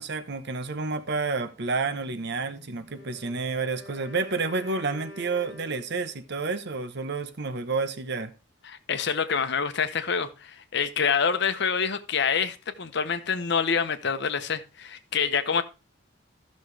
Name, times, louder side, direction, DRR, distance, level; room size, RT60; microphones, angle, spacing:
voice 1, 0.0-8.3, right 4 dB, 60° right, 0.9 m, -30 dB
Wind instrument woodwind instrument, 2.8-6.3, left 1 dB, 5° left, 6.6 m, -46 dB
voice 2, 8.6-15.6, left 6 dB, 60° left, 0.9 m, -26 dB
14.0 x 6.4 x 3.3 m
head